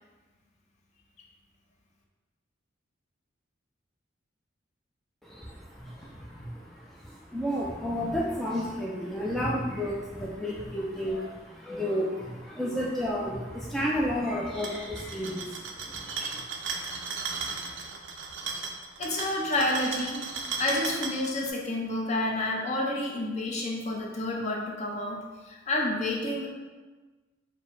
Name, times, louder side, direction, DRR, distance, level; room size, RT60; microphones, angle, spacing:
voice 1, 5.2-16.4, equal, ahead, -5 dB, 0.4 m, -32 dB
sound 1, 14.5-21.5, right 4 dB, 75° right, 0.5 m, -36 dB
voice 2, 19.0-26.5, left 1 dB, 40° left, -1 dB, 0.7 m, -29 dB
4.5 x 2.1 x 4.6 m, 1.3 s
head